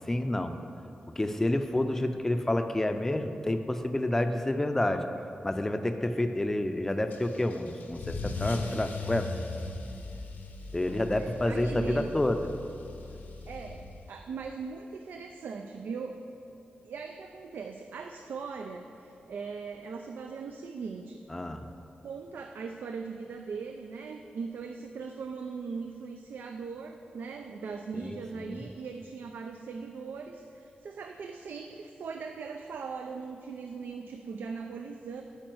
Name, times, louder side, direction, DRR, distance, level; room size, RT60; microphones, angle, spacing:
voice 1, 0.1-0.6 1.2-5.0 5.4-9.3 10.7-12.5 21.3-21.7 28.0-28.6, left 1 dB, 15° left, 7 dB, 0.5 m, -29 dB
Car / Engine starting / Accelerating revving vroom, 7.1-14.3, left 3 dB, 75° left, 0.9 m, -39 dB
voice 2, 10.8-12.1 13.5-16.2 16.8-21.2 22.0-35.2, right 5 dB, 80° right, 4 dB, 0.4 m, -40 dB
9.0 x 5.1 x 7.7 m, 2.9 s
wide cardioid pair, 150°, 3 cm